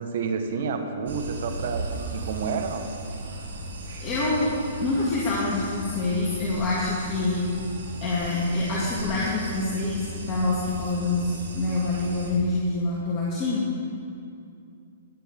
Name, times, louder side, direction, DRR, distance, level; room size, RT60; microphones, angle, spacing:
voice 1, 0.0-2.9, right 5 dB, 65° right, 6 dB, 1.3 m, -30 dB
sound 1, 1.1-12.3, right 1 dB, 80° right, 2.2 m, -36 dB
voice 2, 4.0-4.5 4.8-7.5 8.0-13.6, left 2 dB, 30° left, -6 dB, 2.3 m, -26 dB
18.5 x 9.2 x 3.7 m, 2.5 s
hypercardioid pair, 135°, 0 cm